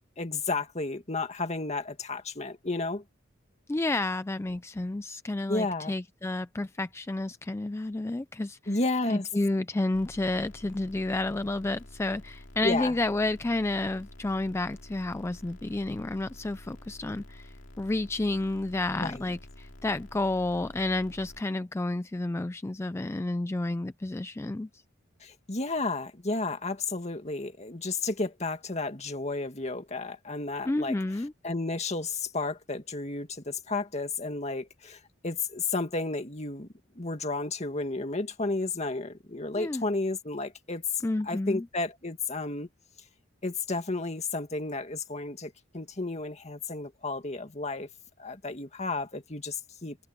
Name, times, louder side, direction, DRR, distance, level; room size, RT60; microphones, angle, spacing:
voice 1, 0.2-3.0 5.5-5.9 8.7-9.3 12.6-12.9 19.0-19.2 25.2-31.0 31.4-36.7 37.0-40.8 41.2-42.7 43.4-47.9 48.2-50.0, left 3 dB, 35° left, 2.0 m, -32 dB
voice 2, 3.7-8.8 9.1-24.8 30.7-31.3 39.6-39.9 41.0-41.7, left 2 dB, 15° left, 0.3 m, -30 dB
sound 1, 9.9-21.4, left 1 dB, 75° left, 2.4 m, -49 dB
head